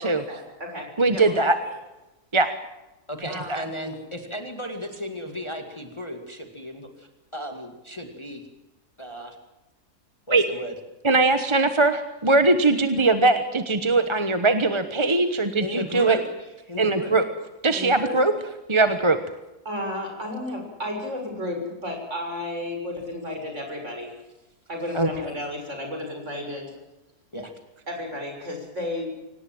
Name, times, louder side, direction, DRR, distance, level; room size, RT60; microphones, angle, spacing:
voice 1, 0.3-1.7 3.3-3.5 17.7-18.2 19.6-24.1 24.7-26.7 27.9-29.1, left 1 dB, 45° right, 3 dB, 7.0 m, -33 dB
voice 2, 1.0-1.6 2.3-2.5 3.5-3.6 10.3-10.4 11.0-16.2 16.8-17.3 17.6-18.3 18.7-19.2 24.9-25.1, right 3 dB, 20° right, 9 dB, 1.0 m, -20 dB
voice 3, 3.1-8.4 9.0-9.4 10.3-10.7 12.6-12.7 15.3-17.2 27.3-27.5, equal, 20° left, 5 dB, 2.3 m, -35 dB
25.0 x 18.5 x 7.7 m, 1.0 s
omnidirectional pair, 1.7 m